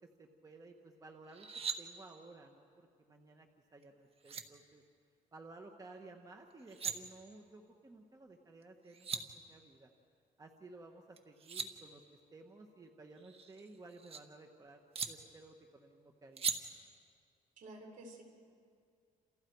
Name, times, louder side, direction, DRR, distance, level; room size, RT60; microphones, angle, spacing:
voice 1, 0.2-1.5 1.8-3.5 3.7-4.8 5.3-9.9 10.4-12.0 12.3-16.6, right 2 dB, 25° right, 3 dB, 1.5 m, -55 dB
sound 1, 1.3-1.8 3.8-3.9 4.2-4.4 6.5-6.9 8.6-8.7 8.9-9.2 11.2-11.7 13.2-14.2 14.9-15.1 16.4-16.6, right 6 dB, 40° right, 1.4 m, -39 dB
voice 2, 17.6-18.2, right 1 dB, 65° right, 2 dB, 5.0 m, -51 dB
29.5 x 28.0 x 4.8 m, 2.3 s
cardioid pair, 120°, 15 cm